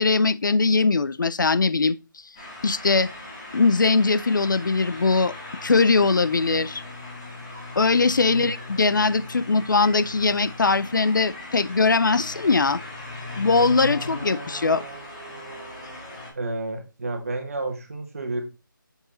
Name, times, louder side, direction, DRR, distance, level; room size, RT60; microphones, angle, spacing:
voice 1, 0.0-2.0 2.6-3.1 3.5-5.3 5.6-6.8 7.8-12.8 13.4-14.9, left 4 dB, 65° left, 0.5 m, -21 dB
sound 1, 2.4-16.3, left 2 dB, 15° left, 1.7 m, -38 dB
voice 2, 16.3-18.4, right 2 dB, 45° right, 1.5 m, -31 dB
7.2 x 4.1 x 3.7 m
figure-of-eight pair, 175°, 11 cm